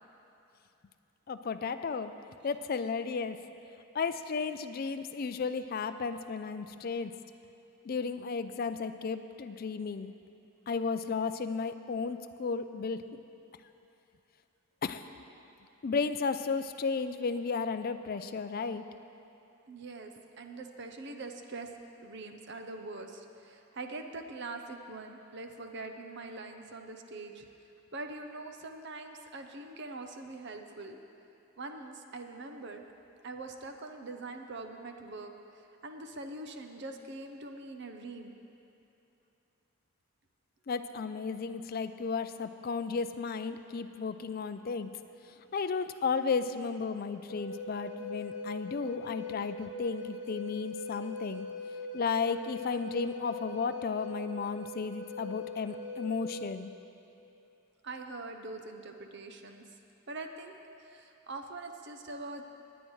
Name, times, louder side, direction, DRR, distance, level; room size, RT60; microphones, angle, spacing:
voice 1, 1.3-2.1 2.4-3.4 3.9-7.1 7.9-10.1 10.7-13.0 14.8-15.0 15.8-18.8 40.7-44.9 45.5-51.5 51.9-56.7, left 5 dB, 40° left, 10 dB, 0.4 m, -34 dB
voice 2, 19.7-20.1 20.4-21.7 22.0-27.4 27.9-31.0 31.6-32.8 33.2-38.3 57.8-59.6 60.1-62.5, right 2 dB, 50° right, 5 dB, 0.7 m, -43 dB
Wind instrument woodwind instrument, 47.3-56.6, left 2 dB, 60° left, 0.7 m, -41 dB
19.5 x 9.0 x 3.2 m, 2.8 s
head